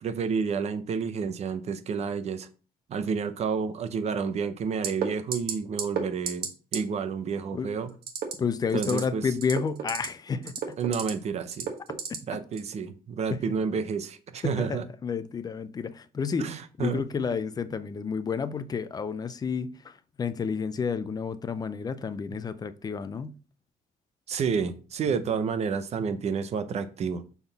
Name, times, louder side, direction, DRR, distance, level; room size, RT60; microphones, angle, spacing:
voice 1, 0.0-2.5 2.9-7.9 8.7-9.2 10.8-11.7 12.3-14.8 16.4-17.0 24.3-27.2, right 6 dB, 40° right, 0.7 m, -30 dB
sound 1, 4.8-5.1 5.3-5.5 5.8-6.0 6.3-6.5 6.7-6.8 8.0-8.3 8.7-9.0 9.4-10.1 10.4-11.1 11.5-12.2 12.6-12.7, right 7 dB, 70° right, 1.4 m, -30 dB
voice 2, 8.4-10.8 12.1-12.2 13.3-13.4 14.4-23.3 25.1-25.2, left 6 dB, 25° left, 0.5 m, -31 dB
7.0 x 3.9 x 4.0 m
cardioid pair, 160°, 16 cm